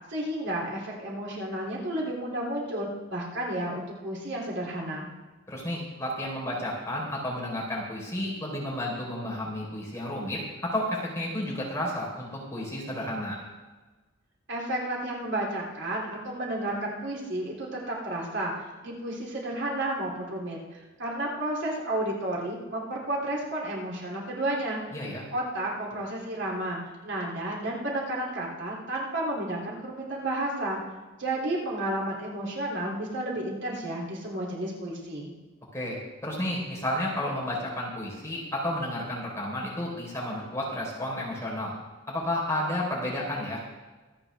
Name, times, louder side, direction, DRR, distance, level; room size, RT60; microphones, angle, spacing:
voice 1, 0.1-5.1 14.5-20.6 21.0-24.8 25.3-30.8 31.2-35.3, right 1 dB, 60° right, -3 dB, 3.2 m, -32 dB
voice 2, 5.5-13.4 24.9-25.2 35.7-36.0 36.2-41.7 42.1-43.7, left 1 dB, 15° left, -4 dB, 4.2 m, -32 dB
25.0 x 8.9 x 3.5 m, 1.2 s
head